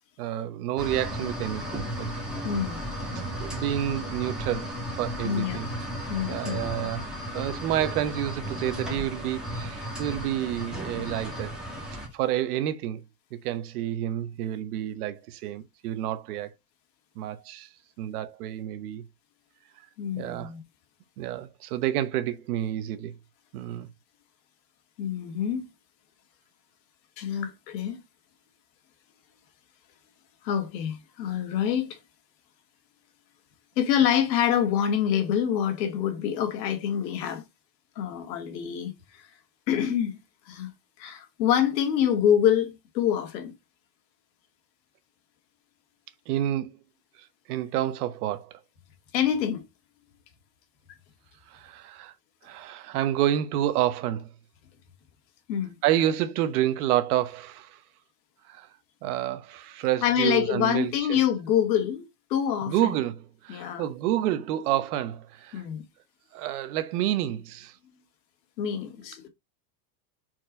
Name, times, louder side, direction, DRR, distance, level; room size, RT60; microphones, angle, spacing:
voice 1, 0.2-2.1 3.4-5.7 6.2-7.0 7.3-11.5 12.1-13.0 13.4-16.5 17.2-17.7 18.0-19.0 20.2-20.5 21.2-23.1 23.5-23.9 46.3-46.8 47.5-48.6 51.5-52.1 52.4-54.3 55.8-57.8 58.5-58.7 59.0-61.2 62.7-63.1 63.4-65.6 66.3-67.7, right 12 dB, 65° right, 1.0 m, -29 dB
sound 1, 0.8-12.1, equal, ahead, 1.7 m, -34 dB
voice 2, 2.4-2.8 5.2-5.6 6.1-6.9 20.0-20.6 25.0-25.7 27.2-28.0 30.4-32.0 33.8-37.4 38.0-38.9 39.7-40.2 40.5-40.7 41.0-43.5 49.1-49.6 55.5-55.7 60.0-62.9 63.5-63.9 65.5-65.8 68.6-69.3, left 9 dB, 80° left, 2.0 m, -26 dB
4.5 x 4.5 x 5.1 m
supercardioid pair, 175°, 50 cm